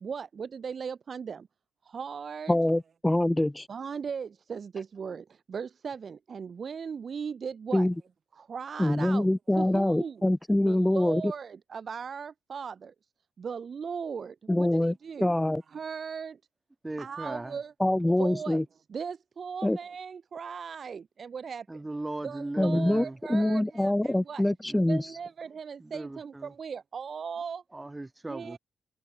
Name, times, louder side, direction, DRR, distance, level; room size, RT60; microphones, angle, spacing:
voice 1, 0.0-1.4 1.9-2.6 3.7-7.9 8.5-9.3 9.6-10.2 10.7-12.9 13.4-15.3 15.7-16.3 17.0-17.7 18.2-18.6 18.9-21.6 22.2-24.4 24.9-27.6 28.3-28.6, right 6 dB, 45° right, 0.5 m, -38 dB
voice 2, 2.5-3.7 7.7-7.9 8.8-11.2 14.5-14.9 15.2-15.6 17.8-18.6 19.6-19.8 22.6-25.1, left 1 dB, 10° left, 0.3 m, -25 dB
voice 3, 16.8-17.6 21.7-23.2 24.6-24.8 25.8-26.5 27.7-28.6, right 2 dB, 15° right, 1.9 m, -38 dB
hypercardioid pair, 45°, 0 cm